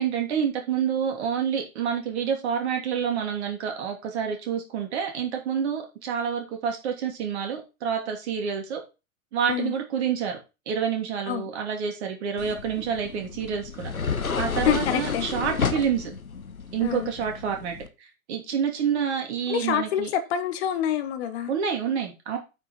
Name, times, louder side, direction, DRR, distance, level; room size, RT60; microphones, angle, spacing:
voice 1, 0.0-8.8 9.3-10.4 10.7-13.9 14.4-16.1 16.7-17.8 18.3-20.1 21.5-22.4, right 7 dB, 50° right, 3.0 m, -28 dB
sound 1, 12.4-17.9, left 6 dB, 85° left, 1.0 m, -31 dB
voice 2, 14.6-15.3 16.8-17.1 19.5-21.5, left 10 dB, 50° left, 1.4 m, -27 dB
8.9 x 6.0 x 4.4 m
figure-of-eight pair, 95°, 41 cm